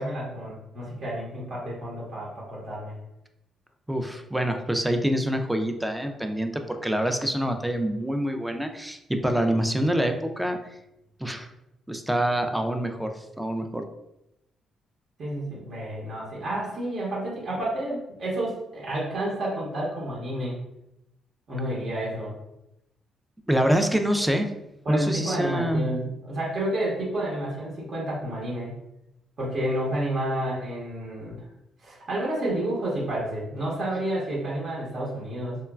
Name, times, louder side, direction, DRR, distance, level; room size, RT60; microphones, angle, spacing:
voice 1, 0.0-3.0 15.2-20.6 21.5-22.3 24.8-28.7 29.4-31.4 31.8-35.6, right 1 dB, 55° right, -5 dB, 0.9 m, -30 dB
voice 2, 3.9-10.6 11.2-11.5 11.9-13.9 23.5-24.5 24.9-25.9, equal, 5° right, 6 dB, 0.3 m, -26 dB
2.9 x 2.2 x 2.3 m, 0.86 s
cardioid pair, 90°, 0 cm